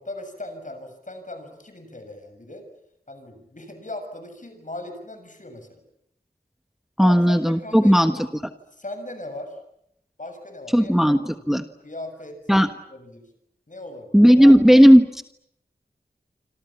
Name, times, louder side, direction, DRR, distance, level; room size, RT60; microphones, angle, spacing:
voice 1, 0.0-2.6 3.1-5.8 7.0-8.1 8.7-9.6 10.2-11.2 11.8-12.4 12.9-13.3 13.7-14.6, left 2 dB, 50° left, 7 dB, 7.1 m, -38 dB
voice 2, 7.0-8.1 10.7-11.2 11.5-11.6 12.5-12.7 14.1-15.2, equal, ahead, 8 dB, 1.3 m, -14 dB
27.0 x 26.5 x 7.4 m, 0.76 s
wide cardioid pair, 65°, 17 cm